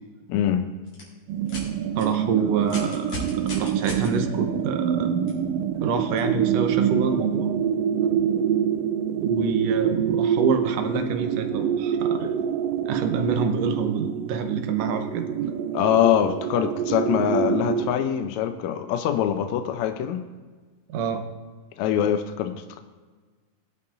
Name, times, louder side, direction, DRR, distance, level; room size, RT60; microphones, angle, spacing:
voice 1, 0.3-0.7 15.7-20.2 21.8-22.8, left 10 dB, 80° left, 7 dB, 1.9 m, -23 dB
sound 1, 0.8-1.0 1.5-1.6 2.0-2.1 2.6-4.1 5.3-5.4 6.2-6.3, left 2 dB, 55° left, 4.4 m, -35 dB
sound 2, 1.3-17.9, right 9 dB, 85° right, 1.4 m, -26 dB
voice 2, 2.0-3.1 3.6-5.1 5.8-7.6 9.2-12.4 12.9-15.5 20.9-21.3, right 5 dB, 65° right, 6 dB, 1.8 m, -27 dB
20.0 x 8.6 x 2.5 m, 1.4 s
omnidirectional pair, 3.5 m